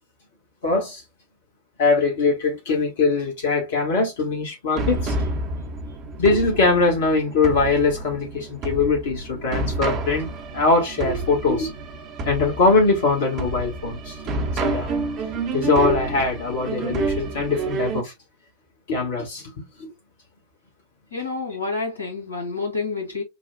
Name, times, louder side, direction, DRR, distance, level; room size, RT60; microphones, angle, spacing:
voice 1, 0.6-1.0 1.8-5.2 6.2-11.7 12.2-14.1 14.6-14.9 15.5-18.1 18.9-19.5 19.8-19.9, left 3 dB, 55° left, 1.4 m, -22 dB
sound 1, 4.8-18.0, right 3 dB, 35° right, 1.0 m, -29 dB
voice 2, 21.1-23.2, left 4 dB, 85° left, 1.8 m, -28 dB
6.8 x 2.4 x 2.2 m
figure-of-eight pair, 90°, 0 cm